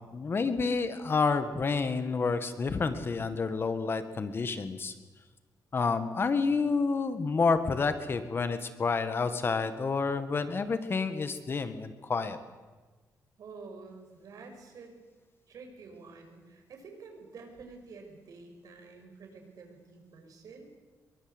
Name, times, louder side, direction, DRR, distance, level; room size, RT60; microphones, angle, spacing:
voice 1, 0.1-4.9 5.7-12.4, left 4 dB, 35° left, 10 dB, 1.9 m, -29 dB
voice 2, 13.4-15.0 15.5-20.7, right 4 dB, 70° right, 4 dB, 5.9 m, -49 dB
24.5 x 23.0 x 8.2 m, 1.3 s
cardioid pair, 120°, 6 cm